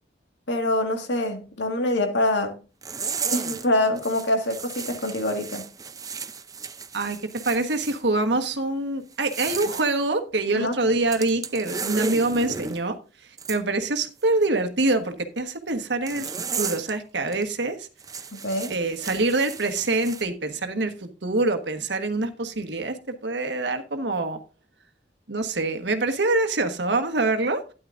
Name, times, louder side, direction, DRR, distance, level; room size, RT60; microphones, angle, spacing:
voice 1, 0.5-2.6 3.3-5.7 10.5-10.7 18.3-18.8, left 1 dB, 75° left, 1.9 m, -25 dB
sound 1, 2.8-3.7 4.0-8.0 9.1-9.9 11.1-12.8 13.4-13.6 16.1-16.9 17.3-17.4 18.0-20.2, right 5 dB, 20° right, 0.5 m, -34 dB
voice 2, 7.4-13.0 13.5-17.9 18.7-23.0 23.2-24.4 25.3-27.6, right 2 dB, 70° right, 1.3 m, -25 dB
12.5 x 10.0 x 2.5 m
head